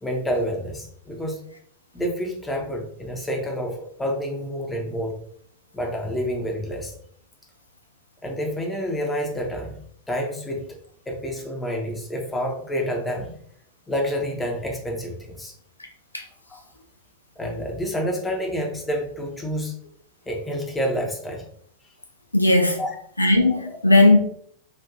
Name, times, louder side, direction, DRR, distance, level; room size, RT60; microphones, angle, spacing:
voice 1, 0.0-1.4 1.9-5.1 5.7-6.9 8.2-9.8 10.1-10.6 11.1-13.3 13.9-15.5 16.5-16.6 17.4-19.7 20.3-21.4 22.8-22.9 23.7-23.8, equal, 10° left, 0 dB, 0.8 m, -28 dB
voice 2, 22.3-22.8 23.2-24.2, left 2 dB, 85° left, 2 dB, 0.5 m, -16 dB
4.2 x 2.6 x 2.6 m, 0.62 s
figure-of-eight pair, 90°, 0 cm